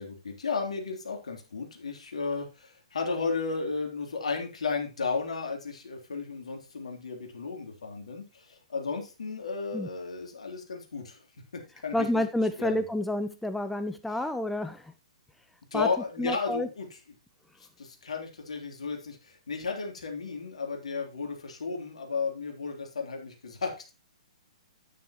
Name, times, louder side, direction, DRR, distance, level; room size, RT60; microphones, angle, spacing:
voice 1, 0.0-11.2 11.5-12.2 12.6-12.9 15.7-16.9 17.8-23.9, left 4 dB, 65° left, 2 dB, 3.3 m, -34 dB
voice 2, 11.9-14.9 15.7-15.9 16.2-16.7, left 1 dB, ahead, 10 dB, 0.5 m, -29 dB
9.9 x 9.3 x 3.0 m, 0.30 s
figure-of-eight pair, 120°, 4 cm